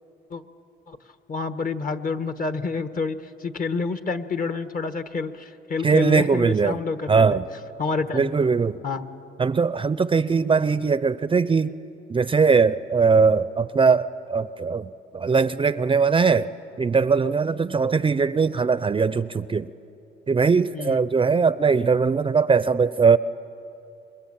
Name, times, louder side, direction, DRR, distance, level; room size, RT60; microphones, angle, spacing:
voice 1, 1.3-7.4 7.8-8.2 8.8-9.1 20.7-21.0, left 4 dB, 45° left, 10 dB, 1.4 m, -28 dB
voice 2, 5.8-6.8 7.1-7.5 8.1-8.8 9.4-11.8 12.1-16.5 16.8-19.7 20.3-23.2, right 5 dB, 25° right, 16 dB, 0.5 m, -20 dB
26.5 x 23.0 x 8.7 m, 2.8 s
cardioid pair, 90°, 20 cm